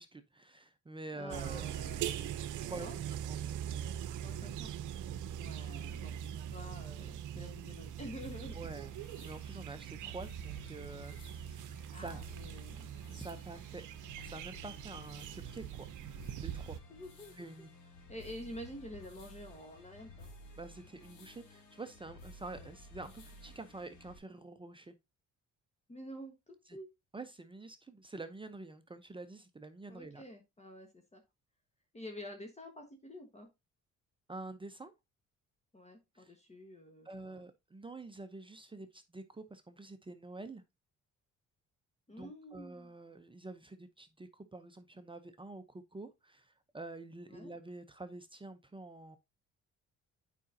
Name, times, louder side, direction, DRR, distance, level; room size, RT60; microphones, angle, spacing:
voice 1, 0.0-1.7 2.5-3.5 8.5-12.2 13.1-13.8 14.2-15.9 16.4-16.8 17.4-17.7 20.6-24.9 26.7-26.8 27.1-30.2 34.3-34.9 36.1-36.3 37.0-40.6 42.1-49.2, right 2 dB, 15° right, 0.7 m, -47 dB
voice 2, 1.1-2.3 2.8-3.0 4.2-4.7 5.4-8.6 11.9-12.9 16.9-17.3 18.1-20.3 22.5-22.7 25.9-26.9 29.9-31.2 31.9-33.5 35.7-37.5 42.1-42.9 47.3-47.5, equal, 20° left, 1.4 m, -48 dB
sound 1, 1.3-16.8, right 10 dB, 80° right, 0.7 m, -42 dB
sound 2, 8.2-24.2, left 1 dB, 80° left, 2.6 m, -54 dB
8.3 x 5.1 x 2.7 m
cardioid pair, 90°, 30 cm